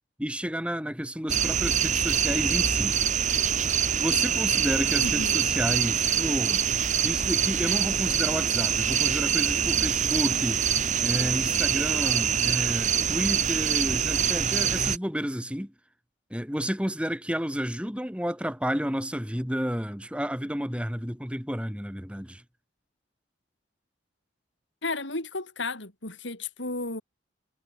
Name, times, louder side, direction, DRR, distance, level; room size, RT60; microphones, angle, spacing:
voice 1, 0.2-3.0 4.0-6.6 7.0-10.7 11.0-15.7 16.3-22.4, equal, 5° right, 4.4 m, -31 dB
sound 1, 1.3-15.0, right 8 dB, 40° right, 2.6 m, -25 dB
voice 2, 5.0-5.5 24.8-27.0, left 2 dB, 80° left, 5.8 m, -33 dB
head